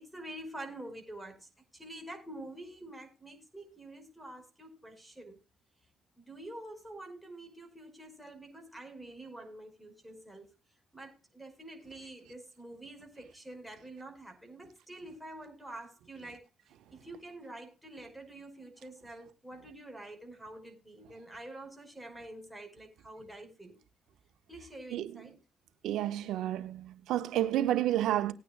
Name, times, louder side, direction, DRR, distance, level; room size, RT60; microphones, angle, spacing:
voice 1, 0.0-5.4 6.2-10.5 10.9-16.4 16.9-23.8 24.5-25.4, right 1 dB, ahead, 5.4 m, -47 dB
voice 2, 25.8-28.3, right 13 dB, 85° right, 1.3 m, -30 dB
19.5 x 9.3 x 2.4 m
cardioid pair, 90°, 0 cm